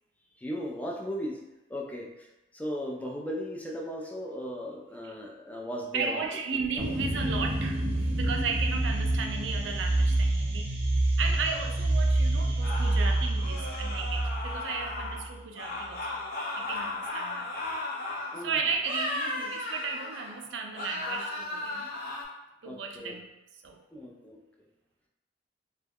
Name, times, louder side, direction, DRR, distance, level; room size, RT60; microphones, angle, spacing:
voice 1, 0.4-1.4 1.7-2.3 2.5-6.3 6.5-6.6 18.3-18.6 22.6-23.2 23.9-24.4, equal, 10° left, -1 dB, 0.4 m, -36 dB
voice 2, 5.9-10.8 11.2-16.2 16.5-17.5 18.4-21.9 22.6-23.8, right 5 dB, 75° right, 3 dB, 0.4 m, -35 dB
sound 1, 6.8-15.3, right 2 dB, 35° right, 0.6 m, -27 dB
sound 2, 12.6-15.2 15.5-18.4 18.8-20.4 20.7-22.2, left 2 dB, 55° left, 0.6 m, -36 dB
2.3 x 2.1 x 3.4 m, 0.97 s
head